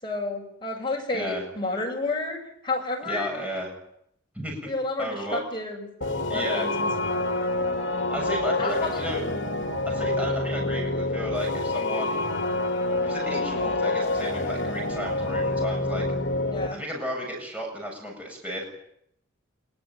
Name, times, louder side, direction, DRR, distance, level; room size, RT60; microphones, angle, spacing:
voice 1, 0.0-2.4 2.6-3.4 4.7-5.9 6.2-7.2 8.6-9.0 16.5-16.8, left 2 dB, 20° left, 1 dB, 7.0 m, -31 dB
voice 2, 1.1-1.4 3.0-3.7 4.3-4.7 5.0-5.4 6.3-6.7 8.1-9.2 9.8-12.3 13.0-16.0 16.7-18.6, equal, 5° right, 0 dB, 7.9 m, -33 dB
sound 1, 6.0-16.7, left 2 dB, 60° left, 3.0 m, -27 dB
24.5 x 21.5 x 9.2 m, 0.74 s
head